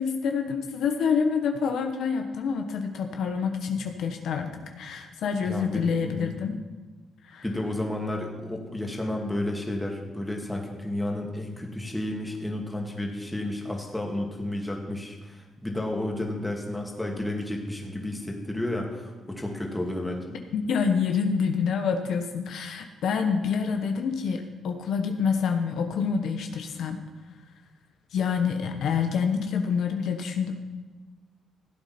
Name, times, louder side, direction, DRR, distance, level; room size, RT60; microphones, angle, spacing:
voice 1, 0.0-4.5 4.8-6.6 7.2-7.4 20.5-27.0 28.1-30.5, left 6 dB, 75° left, 5 dB, 1.1 m, -27 dB
voice 2, 5.4-6.4 7.4-20.3, left 1 dB, 10° left, 0 dB, 2.3 m, -32 dB
15.5 x 8.4 x 4.4 m, 1.3 s
cardioid pair, 90°, 0 cm